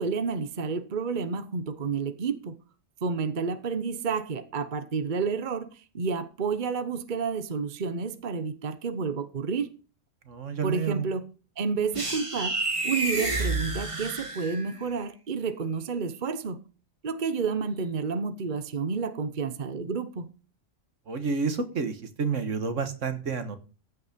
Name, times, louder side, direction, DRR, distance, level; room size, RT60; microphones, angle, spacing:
voice 1, 0.0-2.6 3.0-9.7 10.6-11.3 11.6-12.6 12.8-16.6 17.0-20.3, right 5 dB, 40° right, 1.0 m, -30 dB
voice 2, 10.3-11.0 21.1-23.6, right 5 dB, 70° right, 1.8 m, -29 dB
sound 1, 11.9-14.8, right 2 dB, 25° right, 1.7 m, -30 dB
15.0 x 8.4 x 5.2 m
omnidirectional pair, 1.3 m